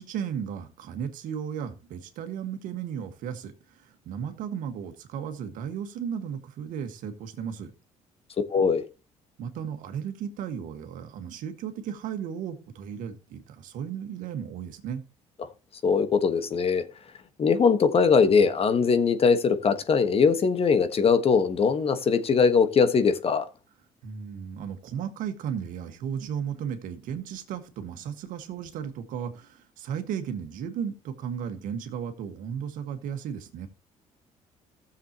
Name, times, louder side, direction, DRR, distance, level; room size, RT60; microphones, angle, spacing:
voice 1, 0.0-7.7 9.4-15.0 24.0-33.7, right 8 dB, 75° right, 1.6 m, -35 dB
voice 2, 8.5-8.8 15.8-16.8 17.4-23.4, left 5 dB, 45° left, 1.4 m, -21 dB
15.5 x 7.4 x 2.9 m
supercardioid pair, 75°, 14 cm